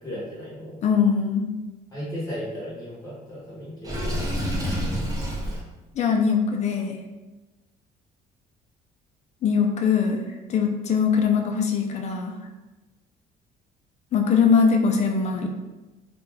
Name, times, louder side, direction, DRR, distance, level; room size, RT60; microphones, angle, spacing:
voice 1, 0.0-0.8 1.9-4.3, equal, 20° left, -8 dB, 0.9 m, -35 dB
voice 2, 0.8-1.5 5.9-7.0 9.4-10.2 10.5-12.4 14.1-15.5, left 6 dB, 40° left, 2 dB, 0.5 m, -21 dB
Water / Sink (filling or washing), 3.8-5.6, equal, 20° right, 0.6 m, -27 dB
2.4 x 2.2 x 3.3 m, 1.1 s
cardioid pair, 110°, 17 cm